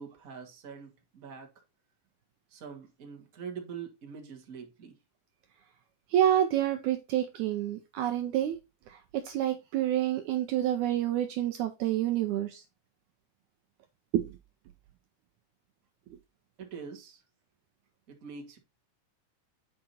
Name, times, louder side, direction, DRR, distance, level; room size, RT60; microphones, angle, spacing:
voice 1, 0.0-1.5 2.5-4.9 16.6-17.2 18.1-18.6, right 6 dB, 35° right, 1.6 m, -44 dB
voice 2, 6.1-8.6 8.9-12.6 14.1-14.3, right 12 dB, 75° right, 1.9 m, -28 dB
8.8 x 5.0 x 4.1 m
omnidirectional pair, 3.8 m